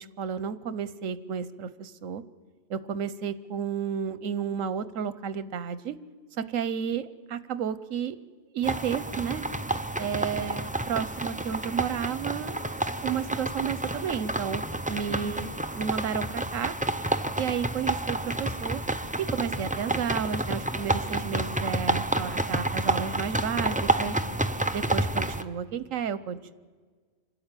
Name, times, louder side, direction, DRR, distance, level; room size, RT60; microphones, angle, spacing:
voice 1, 0.0-2.2 2.7-6.0 6.4-8.2 8.5-9.5 10.0-16.8 17.4-18.8 19.2-24.2 24.7-26.5, right 7 dB, 85° right, 14 dB, 1.2 m, -32 dB
sound 1, 8.6-25.4, right 1 dB, 10° right, 0.4 m, -29 dB
26.5 x 12.5 x 9.0 m, 1.5 s
omnidirectional pair, 1.3 m